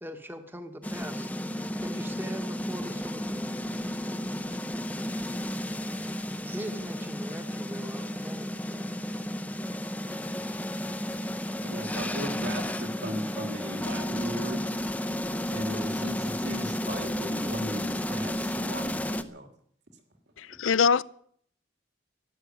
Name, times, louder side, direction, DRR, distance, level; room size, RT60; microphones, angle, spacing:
voice 1, 0.0-1.3 1.8-3.5 6.4-8.9, right 1 dB, 10° right, 1.2 m, -41 dB
sound 1, 0.8-19.2, left 1 dB, 5° left, 0.7 m, -32 dB
voice 2, 11.6-14.6 15.5-19.5 20.4-20.6, equal, 55° right, 2.9 m, -37 dB
voice 3, 20.4-21.0, left 6 dB, 80° left, 0.5 m, -23 dB
12.5 x 12.0 x 9.4 m
head